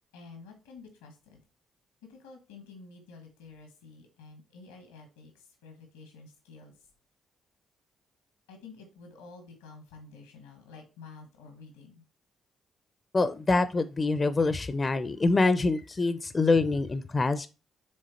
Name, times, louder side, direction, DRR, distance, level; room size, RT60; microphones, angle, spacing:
voice 1, 0.1-1.4 2.0-6.9 8.5-12.0, left 4 dB, 90° left, 1.4 m, -50 dB
voice 2, 13.1-17.5, left 3 dB, 35° left, 0.5 m, -25 dB
6.4 x 3.6 x 4.3 m
hypercardioid pair, 45°, 0 cm